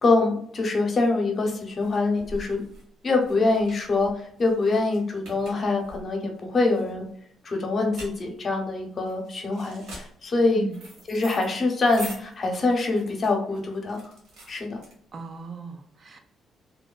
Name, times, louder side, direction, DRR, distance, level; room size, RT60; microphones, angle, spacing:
voice 1, 0.0-2.6 3.0-7.0 7.4-10.6 11.1-14.0 14.5-14.8, left 3 dB, 45° left, 2 dB, 0.7 m, -24 dB
sound 1, 1.3-15.4, right 1 dB, 85° right, 1.1 m, -45 dB
voice 2, 10.5-10.9 15.1-16.2, right 5 dB, 45° right, 5 dB, 0.4 m, -36 dB
2.7 x 2.1 x 2.3 m, 0.65 s
cardioid pair, 90°, 0 cm